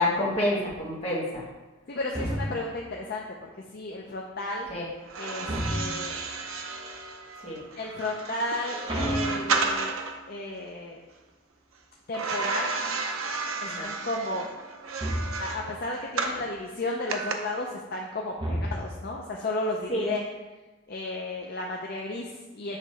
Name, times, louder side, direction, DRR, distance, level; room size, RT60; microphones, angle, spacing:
voice 1, 0.0-1.4 4.7-4.9 7.4-7.6 13.6-13.9 19.9-20.1, left 1 dB, 30° left, -6 dB, 1.5 m, -28 dB
voice 2, 1.9-4.7 5.2-6.2 7.8-10.0 10.3-11.0 12.1-12.7 13.6-14.5 15.4-20.2 20.9-22.8, left 2 dB, 45° left, -1 dB, 0.5 m, -33 dB
sound 1, 2.1-2.9 5.4-6.3 8.9-10.0 15.0-15.7 18.4-19.2, equal, 25° right, 0.9 m, -31 dB
sound 2, 5.0-10.2 12.1-16.4 17.1-17.3, right 4 dB, 80° right, 0.6 m, -32 dB
6.6 x 3.1 x 5.4 m, 1.2 s
head